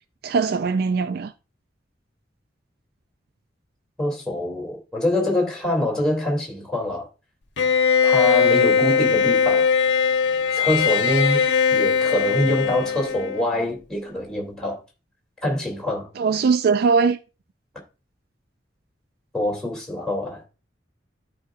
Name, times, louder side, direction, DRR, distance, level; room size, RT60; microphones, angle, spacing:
voice 1, 0.2-1.3 16.2-17.2, right 5 dB, 55° right, 0.3 m, -20 dB
voice 2, 4.0-7.1 8.0-9.7 10.5-14.8 15.4-16.1 19.3-20.4, left 1 dB, 5° left, 2.8 m, -25 dB
Bowed string instrument, 7.6-13.6, left 6 dB, 85° left, 0.9 m, -20 dB
13.0 x 5.0 x 2.5 m
head